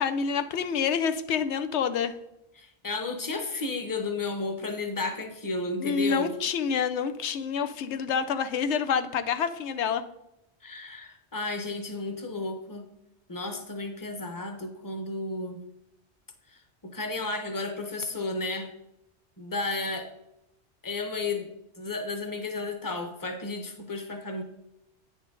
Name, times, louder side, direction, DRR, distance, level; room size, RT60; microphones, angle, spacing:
voice 1, 0.0-2.1 5.8-10.0, left 6 dB, 85° left, 10 dB, 0.9 m, -27 dB
voice 2, 2.6-6.3 10.6-12.8 13.3-15.6 16.8-18.7 19.4-20.1 20.8-24.4, left 3 dB, 20° left, 6 dB, 0.9 m, -33 dB
9.3 x 6.4 x 3.8 m, 0.85 s
omnidirectional pair, 1.1 m